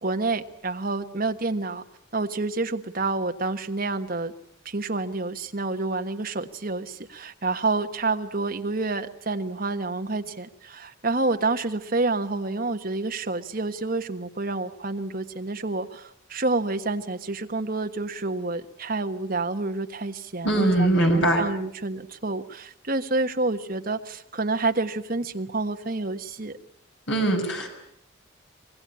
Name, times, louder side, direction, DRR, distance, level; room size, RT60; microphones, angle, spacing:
voice 1, 0.0-1.8 2.1-4.3 4.6-26.6, right 3 dB, 45° right, 6 dB, 1.3 m, -28 dB
voice 2, 20.4-21.4 27.1-27.7, right 1 dB, 55° left, 3 dB, 5.9 m, -21 dB
25.0 x 21.0 x 8.7 m, 0.71 s
head